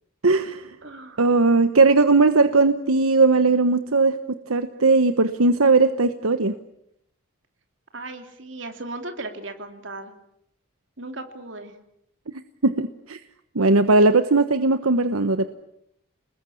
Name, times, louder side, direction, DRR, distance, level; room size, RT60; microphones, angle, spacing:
voice 1, 0.2-0.7 1.2-4.2 4.5-6.5 12.6-13.2 13.5-15.5, right 3 dB, 85° right, 9 dB, 1.2 m, -18 dB
voice 2, 0.8-1.2 7.9-10.1 11.0-11.7, right 2 dB, 60° right, 6 dB, 3.2 m, -36 dB
29.0 x 21.0 x 8.6 m, 0.76 s
head